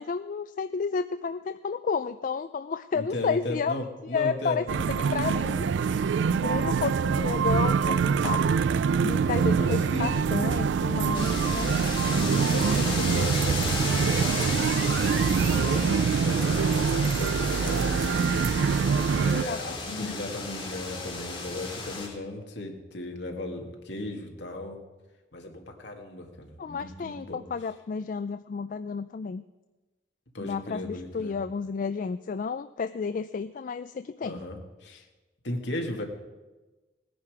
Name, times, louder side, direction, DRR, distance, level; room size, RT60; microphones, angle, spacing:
voice 1, 0.0-3.7 4.1-8.5 9.0-11.8 12.9-13.0 19.5-20.1 26.6-29.4 30.4-34.4 34.9-35.0, left 5 dB, 45° left, 12 dB, 0.3 m, -32 dB
voice 2, 2.9-4.6 9.6-10.3 12.1-18.1 19.1-24.8 25.3-27.4 30.3-31.3 34.2-35.0 35.4-36.0, left 1 dB, 65° left, 3 dB, 1.9 m, -36 dB
sound 1, 4.7-19.4, right 6 dB, 70° right, 0.3 m, -25 dB
sound 2, 11.1-22.1, left 3 dB, 25° left, 2.3 m, -34 dB
18.0 x 10.0 x 4.9 m, 1.2 s
head